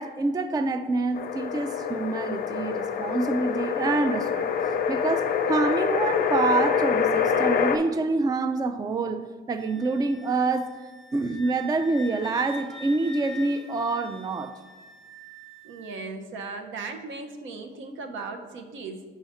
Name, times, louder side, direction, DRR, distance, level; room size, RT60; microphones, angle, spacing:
voice 1, 0.0-4.5 4.9-9.2 9.5-10.7 11.1-14.5, right 3 dB, 20° right, 9 dB, 0.3 m, -26 dB
sound 1, 1.1-7.8, left 7 dB, 50° left, 0.5 m, -26 dB
Wind instrument woodwind instrument, 9.6-16.0, left 1 dB, ahead, 1.0 m, -45 dB
voice 2, 15.6-19.0, right 3 dB, 75° right, 5 dB, 0.8 m, -37 dB
5.8 x 4.8 x 4.2 m, 1.4 s
cardioid pair, 90°, 20 cm